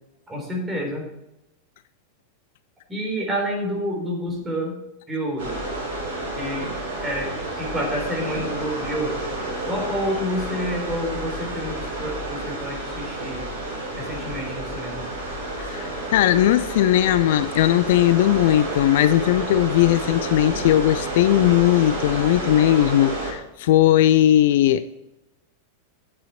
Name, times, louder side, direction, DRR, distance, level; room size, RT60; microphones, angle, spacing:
voice 1, 0.3-1.0 2.9-4.8 5.1-5.5 6.3-6.7 7.0-7.3 7.6-9.2 9.7-13.5 14.0-15.0, equal, 15° right, 3.9 m, -28 dB
sound 1, 5.4-23.3, right 1 dB, 55° right, 4.4 m, -30 dB
voice 2, 15.6-24.9, left 13 dB, 55° left, 0.3 m, -18 dB
9.1 x 8.4 x 4.3 m
figure-of-eight pair, 90°, 0 cm